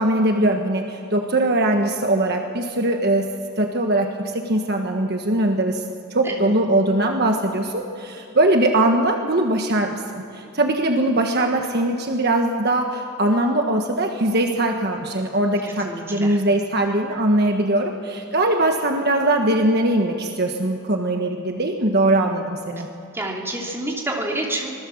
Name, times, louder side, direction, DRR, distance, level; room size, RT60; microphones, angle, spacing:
voice 1, 0.0-3.3 3.6-5.8 6.1-22.9, right 1 dB, 45° right, 3 dB, 1.4 m, -21 dB
voice 2, 6.2-6.5 15.6-16.4 23.1-24.7, right 1 dB, 10° right, -2 dB, 2.9 m, -28 dB
26.0 x 20.5 x 7.3 m, 2.8 s
head